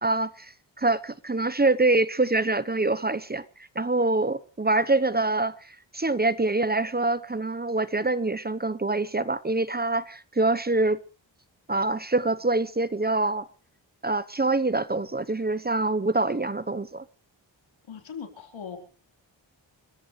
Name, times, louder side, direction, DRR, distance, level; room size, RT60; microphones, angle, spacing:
voice 1, 0.0-3.4 3.7-11.0 11.7-13.5 14.0-17.0, right 2 dB, 20° right, 0.9 m, -25 dB
voice 2, 17.9-18.8, left 7 dB, 85° left, 4.3 m, -39 dB
29.0 x 14.5 x 3.3 m
cardioid pair, 60°, 45 cm